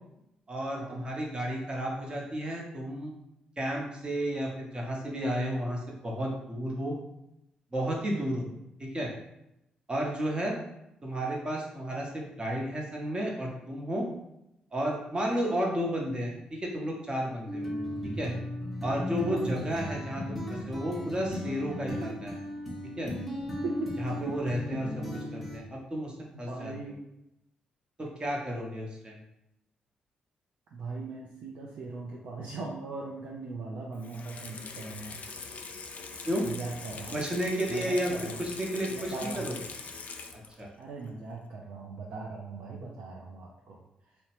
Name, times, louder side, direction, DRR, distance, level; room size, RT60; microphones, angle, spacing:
voice 1, 0.5-3.1 3.6-7.0 7.7-8.5 8.8-9.1 9.9-10.5 11.0-14.0 14.7-17.7 18.2-18.3 18.8-22.4 23.0-23.1 24.0-24.9 25.3-26.1 26.4-26.7 28.0-29.2 36.2-36.4 37.1-39.5 40.6-40.7, equal, 30° right, -1 dB, 0.8 m, -32 dB
sound 1, 17.5-25.6, left 1 dB, ahead, 0.8 m, -36 dB
voice 2, 23.6-23.9 24.2-24.4 26.3-27.0 30.7-35.2 36.1-36.2 36.4-37.2 37.7-38.5 38.8-39.5 40.8-43.8 44.1-44.2, right 3 dB, 65° right, -3 dB, 0.4 m, -39 dB
Water tap faucet / Sink (filling or washing), 33.9-40.7 41.0-41.1, left 4 dB, 50° left, 0.3 m, -43 dB
2.7 x 2.1 x 2.9 m, 0.84 s
hypercardioid pair, 45°, 3 cm